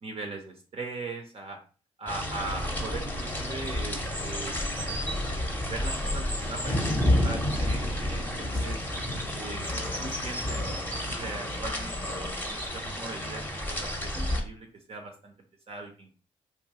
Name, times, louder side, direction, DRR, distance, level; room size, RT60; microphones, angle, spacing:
voice 1, 0.0-1.6 2.0-4.5 5.6-6.8 7.1-8.8 9.3-10.6 10.9-15.3 15.7-16.1, right 3 dB, 40° right, 2 dB, 0.6 m, -40 dB
sound 1, 2.1-14.4, left 1 dB, 10° left, 0.8 m, -30 dB
2.6 x 2.2 x 2.9 m, 0.39 s
hypercardioid pair, 45°, 15 cm